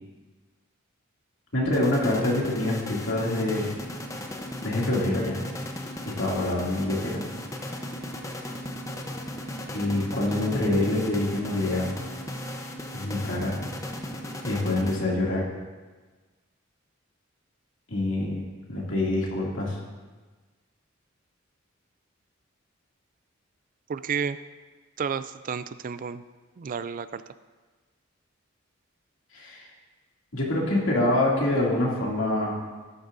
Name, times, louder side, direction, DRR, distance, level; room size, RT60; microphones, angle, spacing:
voice 1, 1.5-3.7 4.6-5.4 6.0-7.2 9.7-11.9 12.9-13.6 14.4-15.4 17.9-18.4 18.7-19.8 29.3-29.7 30.3-32.6, left 1 dB, 70° left, -3 dB, 2.6 m, -26 dB
sound 1, 1.7-15.4, left 1 dB, 15° left, 0.8 m, -36 dB
voice 2, 23.9-24.4 25.0-26.2 26.6-27.2, right 6 dB, 40° right, 14 dB, 0.3 m, -31 dB
13.5 x 11.5 x 2.7 m, 1.3 s
head